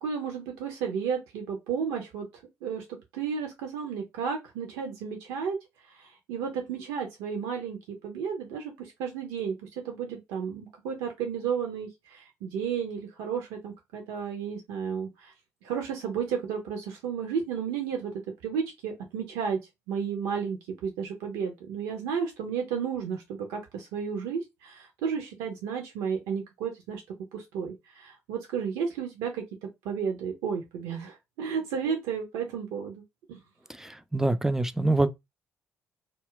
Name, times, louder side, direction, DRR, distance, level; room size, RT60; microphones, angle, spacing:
voice 1, 0.0-2.9 3.1-5.6 5.9-15.3 15.6-18.1 18.4-19.6 19.9-27.0 27.3-33.0 33.3-33.4, right 6 dB, 65° right, 0.5 m, -33 dB
voice 2, 33.8-35.1, right 2 dB, 5° right, 0.3 m, -25 dB
2.2 x 2.0 x 3.6 m
figure-of-eight pair, 45°, 7 cm